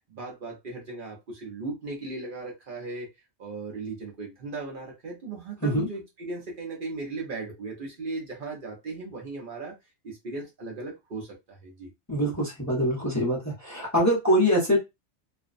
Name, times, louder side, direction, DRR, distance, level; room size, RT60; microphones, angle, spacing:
voice 1, 0.1-3.1 3.4-9.8 10.0-11.9, right 3 dB, 55° right, -1 dB, 0.9 m, -37 dB
voice 2, 12.1-14.8, equal, 15° left, -2 dB, 0.7 m, -24 dB
2.5 x 2.1 x 2.4 m, 0.22 s
omnidirectional pair, 1.1 m